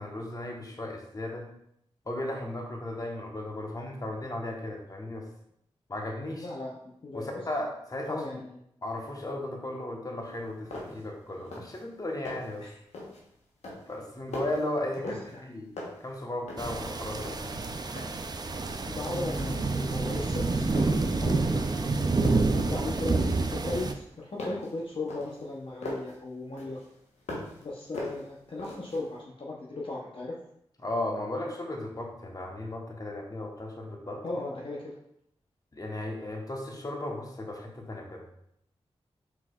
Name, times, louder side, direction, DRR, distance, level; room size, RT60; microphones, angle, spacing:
voice 1, 0.0-1.5 2.1-5.2 5.9-6.5 7.1-8.4 8.8-12.6 13.9-15.2 15.5-17.7 30.8-34.4 35.7-38.2, left 1 dB, 35° left, 1 dB, 1.1 m, -35 dB
voice 2, 6.4-7.4 8.1-8.6 12.6-12.7 15.0-15.5 18.9-21.4 22.1-26.8 27.6-30.4 34.2-34.9, left 2 dB, 50° left, -4 dB, 0.9 m, -37 dB
sound 1, 10.3-10.4 10.7-11.1 11.4-11.8 12.1-12.6 12.9-13.3 13.6-15.5 15.8-16.8 17.1-18.3 18.7-19.0 19.4-19.8 20.1-21.1 21.6-21.9 22.2-23.3 23.7-26.2 26.6-27.6 27.9-29.0, left 1 dB, 80° left, 1.1 m, -41 dB
sound 2, 16.6-23.9, right 3 dB, 35° right, 0.5 m, -28 dB
4.7 x 4.2 x 2.4 m, 0.73 s
cardioid pair, 40°, 11 cm